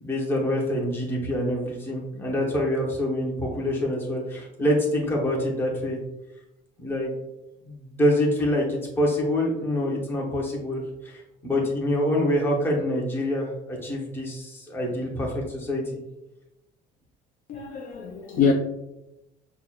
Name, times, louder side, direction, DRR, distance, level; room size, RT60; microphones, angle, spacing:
voice 1, 0.0-6.0 6.8-7.1 7.6-15.8, left 1 dB, 10° left, 0.7 m, -26 dB
voice 2, 17.5-18.5, left 5 dB, 45° left, 0.4 m, -24 dB
6.0 x 2.1 x 2.2 m
cardioid pair, 170°, 20 cm